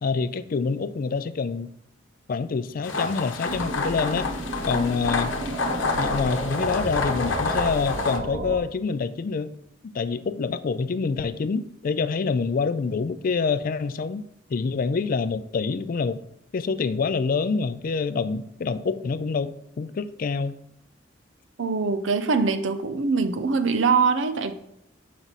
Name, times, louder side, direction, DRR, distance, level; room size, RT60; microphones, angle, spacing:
voice 1, 0.0-1.7 2.3-4.3 4.7-5.3 5.9-9.6 9.9-14.2 14.5-16.2 16.5-20.6, left 4 dB, 50° left, 13 dB, 0.4 m, -26 dB
sound 1, 2.8-8.2, left 3 dB, 90° left, 0.9 m, -28 dB
sound 2, 3.4-8.6, right 1 dB, 50° right, 1.0 m, -32 dB
voice 2, 21.6-24.5, right 4 dB, 90° right, 9 dB, 0.6 m, -23 dB
5.9 x 5.1 x 4.1 m, 0.78 s
head